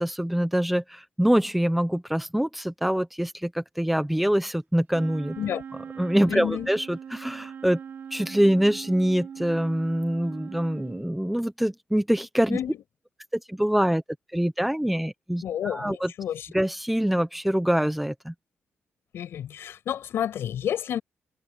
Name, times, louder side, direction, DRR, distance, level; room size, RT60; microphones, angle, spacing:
voice 1, 0.0-5.4 6.0-7.8 8.1-12.6 13.3-14.0 14.3-16.1 16.5-18.3, equal, 5° right, 1.0 m, -25 dB
Wind instrument woodwind instrument, 4.9-11.1, right 7 dB, 50° right, 3.6 m, -41 dB
voice 2, 6.3-6.7 12.5-12.8 15.4-16.5 19.1-21.0, left 10 dB, 70° left, 7.9 m, -30 dB
wide cardioid pair, 175°, 4 cm